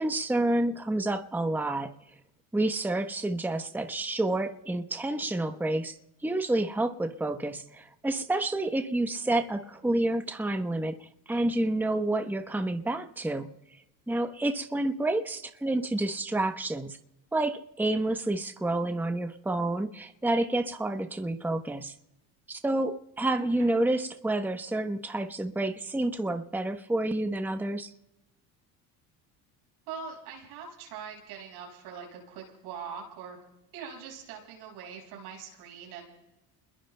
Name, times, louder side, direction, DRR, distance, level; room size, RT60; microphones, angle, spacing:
voice 1, 0.0-2.0 2.5-6.0 6.2-13.5 14.1-17.0 17.3-21.9 22.5-27.9, right 2 dB, 5° right, 8 dB, 1.0 m, -29 dB
voice 2, 29.9-33.4 33.7-36.0, right 6 dB, 85° right, -1 dB, 6.0 m, -42 dB
29.0 x 21.5 x 2.3 m, 0.92 s
supercardioid pair, 80°, 44 cm